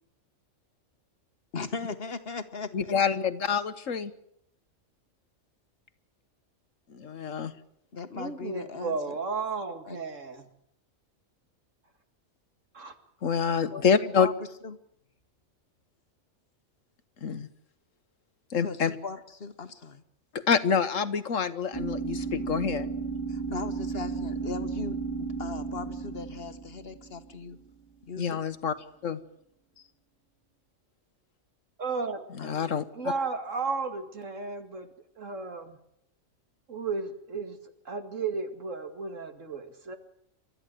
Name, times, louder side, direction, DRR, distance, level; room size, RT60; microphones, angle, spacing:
voice 1, 1.5-2.9 7.9-9.0 9.9-10.0 13.7-14.3 14.6-14.8 18.6-20.0 23.3-27.6 28.0-28.4 32.4-32.8, left 5 dB, 50° left, 10 dB, 1.5 m, -38 dB
voice 2, 2.7-4.1 6.9-7.5 13.2-14.3 17.2-17.5 18.5-18.9 20.3-22.9 28.2-28.7 29.0-29.2 32.4-32.8, left 6 dB, 75° left, 12 dB, 1.5 m, -27 dB
voice 3, 8.1-10.5 12.7-12.9 31.8-32.2 32.6-32.7 32.9-34.9 35.2-35.8 36.7-37.6 37.9-40.0, right 4 dB, 70° right, 7 dB, 2.4 m, -33 dB
sound 1, 21.7-27.5, right 4 dB, 20° left, 2.1 m, -34 dB
29.0 x 13.0 x 9.2 m, 0.74 s
omnidirectional pair, 1.3 m